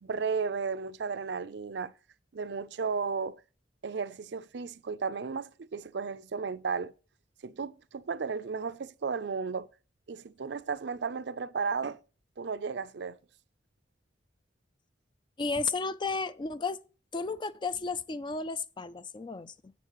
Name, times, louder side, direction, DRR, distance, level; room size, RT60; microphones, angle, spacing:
voice 1, 0.0-1.9 2.3-3.4 3.8-6.9 7.4-9.7 10.1-12.0 12.4-13.2, right 5 dB, 65° right, 0.5 m, -34 dB
voice 2, 15.4-16.8 17.1-19.7, left 4 dB, 25° left, 0.4 m, -33 dB
11.5 x 8.2 x 3.0 m
head